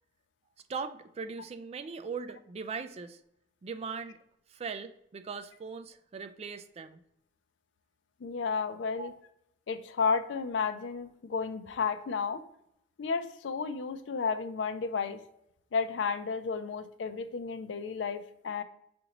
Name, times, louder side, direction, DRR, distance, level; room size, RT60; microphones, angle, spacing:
voice 1, 0.7-3.2 3.6-4.2 4.5-7.0 9.0-9.1, right 5 dB, 35° right, 9 dB, 0.3 m, -39 dB
voice 2, 8.2-9.1 9.7-12.4 13.0-15.2 15.7-18.6, left 5 dB, 80° left, 10 dB, 0.4 m, -32 dB
5.8 x 2.6 x 2.9 m, 0.77 s
head